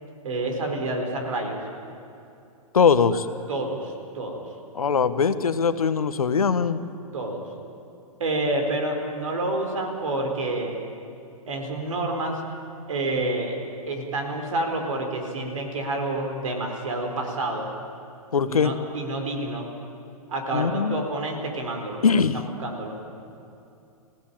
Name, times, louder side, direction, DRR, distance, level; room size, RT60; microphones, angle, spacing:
voice 1, 0.2-1.6 3.5-4.4 7.1-7.5 8.2-10.8 11.5-12.4 12.9-13.6 13.9-17.7 18.5-19.7 20.3-22.0 22.3-23.0, right 2 dB, 60° right, 3 dB, 4.5 m, -28 dB
voice 2, 2.7-3.3 4.7-6.8 18.3-18.7 20.5-21.0 22.0-22.4, left 6 dB, 70° left, 12 dB, 1.3 m, -21 dB
26.0 x 17.0 x 9.0 m, 2.7 s
figure-of-eight pair, 115°, 19 cm